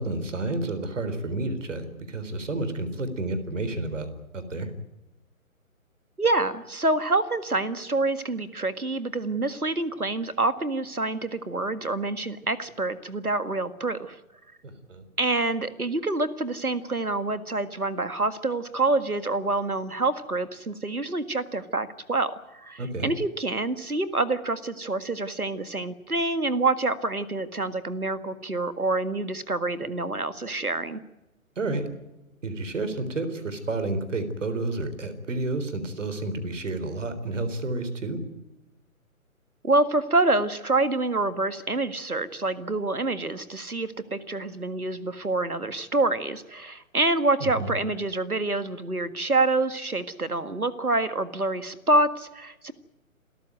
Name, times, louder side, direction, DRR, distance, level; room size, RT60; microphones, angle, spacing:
voice 1, 0.0-4.1 4.3-4.7 14.6-15.0 22.8-23.1 31.6-31.8 32.4-38.2 47.4-47.7, right 2 dB, 60° right, 12 dB, 4.0 m, -30 dB
voice 2, 6.2-14.2 15.2-31.0 39.6-52.7, right 2 dB, 85° right, 13 dB, 1.9 m, -27 dB
28.0 x 14.0 x 9.3 m, 0.97 s
figure-of-eight pair, 135°, 43 cm